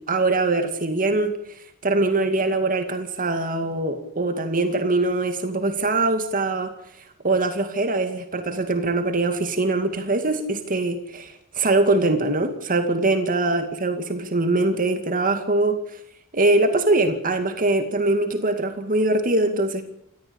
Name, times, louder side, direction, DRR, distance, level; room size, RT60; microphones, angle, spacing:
voice 1, 0.1-6.7 7.2-16.0 16.3-19.8, right 2 dB, 40° right, 7 dB, 2.2 m, -22 dB
28.5 x 15.0 x 8.8 m, 0.75 s
head